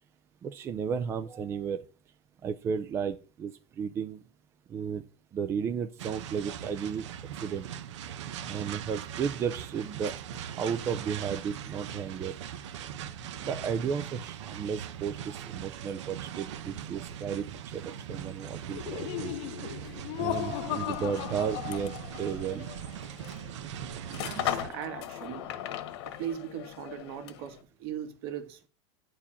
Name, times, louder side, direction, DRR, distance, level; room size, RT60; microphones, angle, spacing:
voice 1, 0.4-1.8 2.4-4.2 4.7-5.0 5.3-7.1 7.4-7.7 8.4-10.1 10.6-12.3 13.4-17.5 17.7-19.3 20.2-22.7, right 7 dB, 15° right, 0.4 m, -33 dB
sound 1, 6.0-24.7, right 9 dB, 85° right, 1.1 m, -40 dB
Laughter, 18.7-22.4, left 15 dB, 50° left, 0.8 m, -36 dB
sound 2, 20.8-27.6, left 12 dB, 65° left, 1.5 m, -39 dB
voice 2, 24.1-25.5 26.2-28.7, right 9 dB, 60° right, 1.9 m, -39 dB
9.8 x 4.6 x 7.1 m
supercardioid pair, 165°, 15 cm